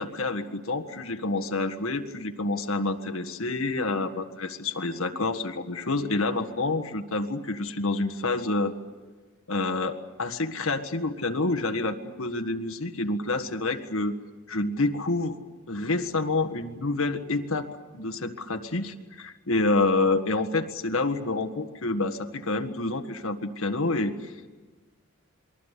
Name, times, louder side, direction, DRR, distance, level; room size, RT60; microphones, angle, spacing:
voice 1, 0.0-8.7 9.5-14.1 14.5-15.4 15.7-17.7 17.9-24.5, left 2 dB, 80° left, 7 dB, 1.7 m, -28 dB
28.0 x 22.0 x 8.3 m, 1.3 s
head